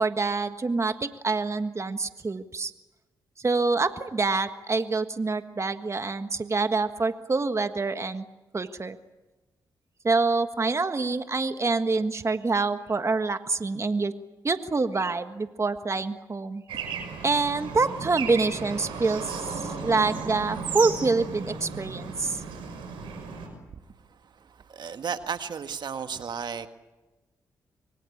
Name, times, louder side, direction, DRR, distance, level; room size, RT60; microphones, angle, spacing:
voice 1, 0.0-2.7 3.4-8.2 8.5-9.0 10.0-14.1 14.4-16.6 17.2-19.2 19.5-22.4, right 3 dB, 35° right, 9 dB, 1.5 m, -26 dB
Bird / Traffic noise roadway noise, 16.7-23.5, right 5 dB, 85° right, 5.8 m, -35 dB
voice 2, 24.8-26.7, right 6 dB, 60° right, 9 dB, 1.7 m, -33 dB
26.5 x 23.0 x 8.6 m, 1.1 s
supercardioid pair, 45°, 8 cm